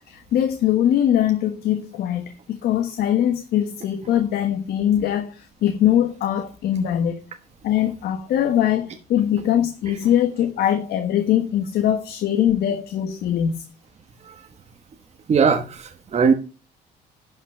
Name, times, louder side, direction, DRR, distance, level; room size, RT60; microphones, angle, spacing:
voice 1, 0.1-7.2 7.6-13.6, left 10 dB, 70° left, 1.5 m, -22 dB
voice 2, 15.3-16.3, right 5 dB, 40° right, 1.3 m, -20 dB
11.5 x 5.8 x 5.7 m
cardioid pair, 110°, 17 cm